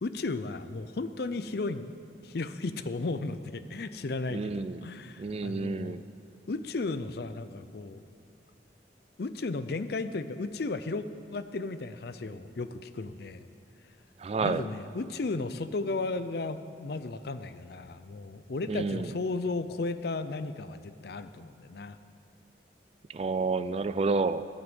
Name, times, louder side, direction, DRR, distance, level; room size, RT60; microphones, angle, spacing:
voice 1, 0.0-1.9 2.2-6.0 6.5-8.0 9.2-11.0 11.3-13.5 14.4-22.0, left 3 dB, 55° left, 12 dB, 0.5 m, -34 dB
voice 2, 4.3-4.8 5.2-6.0 14.2-14.6 18.7-19.1 23.1-24.4, right 4 dB, 35° right, 13 dB, 0.3 m, -30 dB
11.5 x 7.9 x 9.2 m, 2.5 s
head